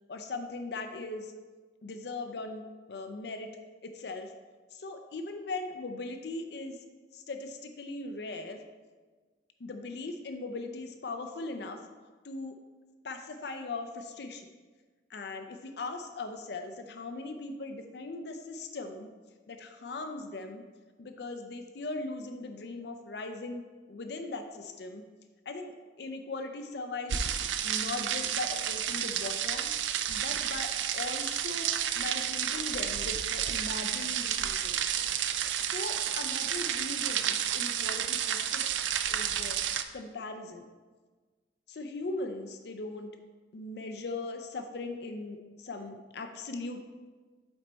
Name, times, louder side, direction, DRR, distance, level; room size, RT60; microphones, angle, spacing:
voice 1, 0.1-1.3 1.8-3.5 3.8-4.3 4.7-6.8 7.1-8.6 9.6-11.8 12.2-12.6 13.0-14.5 15.1-19.1 19.5-20.6 21.0-23.6 23.9-25.0 25.5-27.4 27.6-29.7 30.1-31.7 32.0-35.0 35.5-38.7 39.1-39.6 39.9-40.7 41.7-43.1 43.5-46.8, left 3 dB, 60° left, 6 dB, 0.5 m, -39 dB
sound 1, 27.1-39.8, right 9 dB, 80° right, 0.4 m, -31 dB
7.9 x 4.3 x 4.0 m, 1.4 s
head